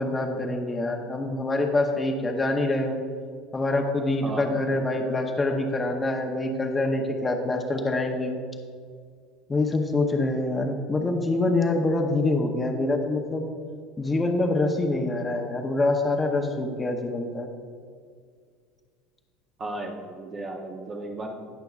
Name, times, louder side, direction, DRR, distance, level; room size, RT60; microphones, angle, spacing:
voice 1, 0.0-3.0 3.5-8.4 9.5-13.5 14.0-17.5, left 2 dB, 15° left, 2 dB, 0.8 m, -25 dB
voice 2, 4.2-4.7 19.6-21.3, right 2 dB, 30° right, 0 dB, 0.8 m, -35 dB
17.0 x 5.8 x 2.4 m, 2.1 s
cardioid pair, 130°, 0 cm